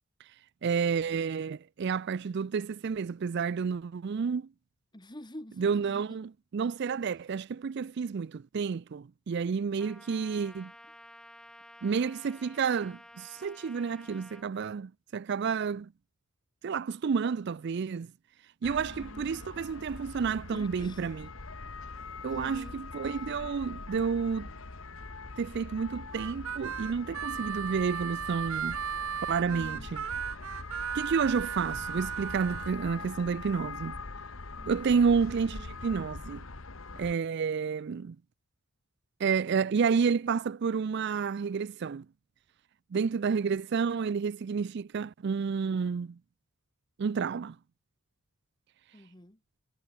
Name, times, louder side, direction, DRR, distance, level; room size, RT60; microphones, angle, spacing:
voice 1, 0.6-4.5 5.6-10.7 11.8-15.9 16.6-18.1 18.6-21.3 22.2-24.5 25.4-28.8 29.3-30.0 30.9-34.0 34.7-36.4 37.0-38.2 39.2-42.1 42.9-46.2 47.0-47.6, right 6 dB, 55° right, 0.4 m, -30 dB
voice 2, 4.9-6.2 18.6-19.3 20.5-21.1 22.3-22.8 29.4-29.9 34.6-35.0 48.9-49.4, left 1 dB, 20° left, 2.0 m, -47 dB
Trumpet, 9.8-14.5, left 1 dB, 5° left, 3.3 m, -52 dB
sound 1, 18.6-37.1, left 3 dB, 70° left, 1.6 m, -43 dB
Harmonica, 26.1-32.7, right 8 dB, 75° right, 0.8 m, -36 dB
head